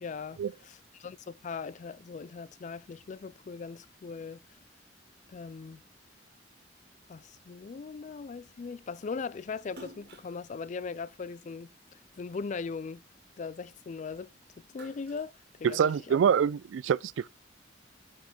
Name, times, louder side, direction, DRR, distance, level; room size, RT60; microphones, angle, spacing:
voice 1, 0.0-4.4 5.3-5.8 7.1-11.7 12.2-13.0 13.4-14.3 14.7-15.3 15.6-16.2, left 5 dB, 40° left, 0.3 m, -39 dB
Splash splatter, 9.7-12.2 12.7-14.1 14.5-16.2, right 1 dB, 60° right, 1.9 m, -53 dB
voice 2, 15.6-17.3, right 7 dB, 80° right, 0.3 m, -25 dB
5.6 x 5.0 x 5.1 m
head